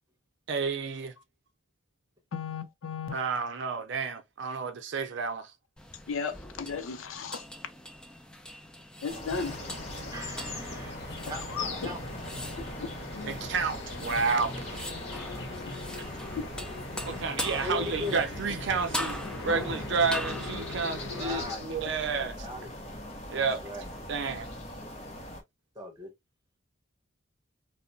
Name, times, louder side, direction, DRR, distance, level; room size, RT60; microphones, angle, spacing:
voice 1, 0.5-1.1 3.1-5.5 13.3-14.9 16.0-16.1 17.0-22.4 23.3-23.6 24.1-24.5, right 5 dB, 60° right, 0.5 m, -30 dB
voice 2, 2.3-3.2 6.1-7.4 9.0-9.5 11.3-11.9 12.6-13.5 15.7-16.5, left 5 dB, 90° left, 0.5 m, -36 dB
sound 1, 5.8-21.5, equal, 5° left, 0.4 m, -41 dB
sound 2, 9.1-25.4, left 1 dB, 35° left, 0.7 m, -41 dB
sound 3, 9.3-21.5, left 2 dB, 55° left, 1.0 m, -41 dB
voice 3, 10.1-12.0 17.6-18.2 21.1-21.7 22.2-22.7 23.3-23.9 25.7-26.1, left 2 dB, 20° right, 1.0 m, -39 dB
2.8 x 2.1 x 2.5 m
head